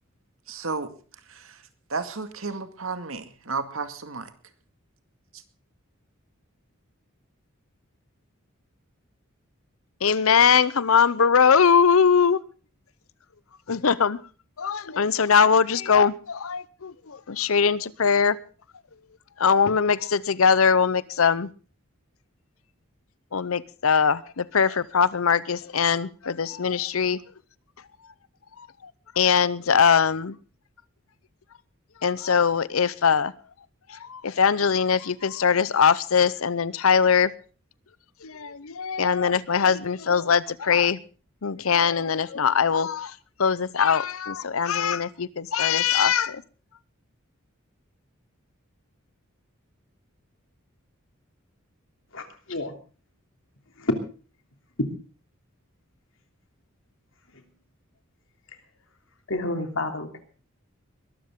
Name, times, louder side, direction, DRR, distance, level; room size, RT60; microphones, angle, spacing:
voice 1, 0.5-0.9 1.3-1.6 1.9-4.3, right 4 dB, 75° right, 2.1 m, -32 dB
voice 2, 10.0-12.4 13.7-14.2 14.6-18.4 19.4-21.5 23.3-27.2 29.2-30.3 32.0-33.3 33.9-37.3 38.2-41.0 41.4-43.1 43.4-46.4, left 6 dB, 85° left, 0.7 m, -21 dB
voice 3, 52.1-52.7 53.8-53.9 59.3-60.2, left 2 dB, 70° left, 3.0 m, -29 dB
21.5 x 13.5 x 3.7 m
head